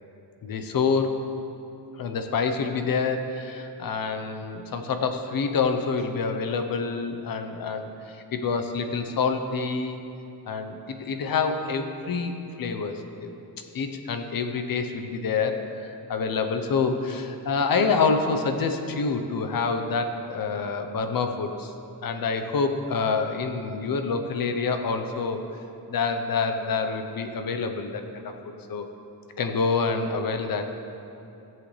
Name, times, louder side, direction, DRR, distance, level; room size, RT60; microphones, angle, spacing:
voice 1, 0.4-1.2 1.9-10.0 10.5-13.3 13.7-21.7 22.0-25.4 25.9-28.3 28.7-28.9 29.4-30.7, left 4 dB, 55° left, 6 dB, 0.9 m, -27 dB
15.0 x 7.8 x 3.3 m, 2.8 s
cardioid pair, 120°, 40 cm